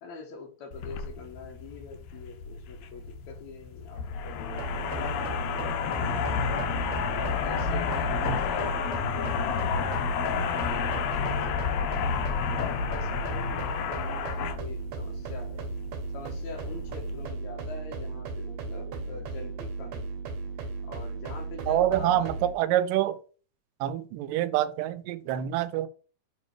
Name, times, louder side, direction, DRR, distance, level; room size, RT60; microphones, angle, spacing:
voice 1, 0.0-6.7 7.1-10.0 10.3-15.6 16.1-20.1 20.8-22.3, left 4 dB, 65° left, 2.2 m, -44 dB
sound 1, 0.7-17.3, left 6 dB, 85° left, 1.6 m, -31 dB
sound 2, 4.5-22.5, right 3 dB, 65° right, 2.1 m, -36 dB
voice 2, 21.7-23.2 23.8-25.9, right 12 dB, 85° right, 2.2 m, -26 dB
7.2 x 3.2 x 4.6 m
omnidirectional pair, 3.8 m